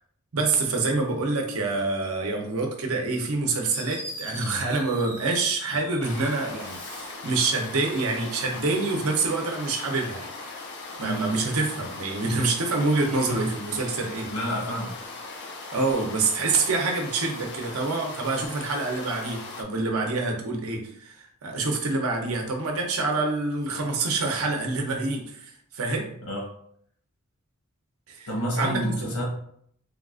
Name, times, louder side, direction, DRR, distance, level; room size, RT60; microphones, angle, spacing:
voice 1, 0.3-10.3 11.0-14.3 15.7-25.3 25.7-26.1 28.1-28.3 28.6-29.1, right 3 dB, 70° right, 1 dB, 0.7 m, -26 dB
Fireworks, 3.3-3.4 3.7-6.1 6.5-7.3, equal, 5° left, 0.5 m, -41 dB
sound 1, 6.0-19.6, left 3 dB, 50° left, 0.5 m, -39 dB
voice 2, 14.3-14.9 26.3-26.5 28.3-29.2, equal, 80° left, -2 dB, 1.2 m, -29 dB
3.5 x 2.4 x 2.4 m, 0.66 s
head